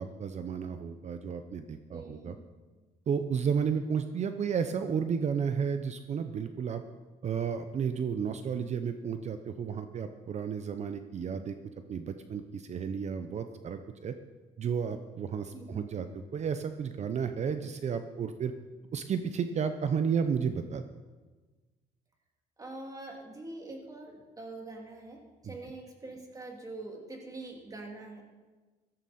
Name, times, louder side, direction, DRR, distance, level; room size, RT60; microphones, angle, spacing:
voice 1, 0.0-2.4 3.1-6.8 7.2-11.6 11.9-14.1 14.6-18.5 18.9-20.8 25.4-25.6, right 6 dB, 40° right, 9 dB, 0.7 m, -32 dB
voice 2, 1.9-2.4 15.5-15.8 22.6-28.2, right 2 dB, 20° right, 1 dB, 2.7 m, -44 dB
15.5 x 13.0 x 4.3 m, 1.3 s
cardioid pair, 110°, 17 cm